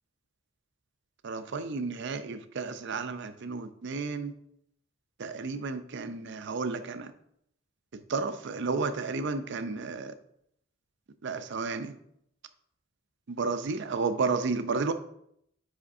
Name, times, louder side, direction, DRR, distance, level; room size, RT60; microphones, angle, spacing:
voice 1, 1.2-4.3 5.2-7.1 7.9-10.1 11.2-12.0 13.3-14.9, right 4 dB, 60° right, 10 dB, 0.5 m, -32 dB
8.4 x 5.0 x 2.6 m, 0.73 s
head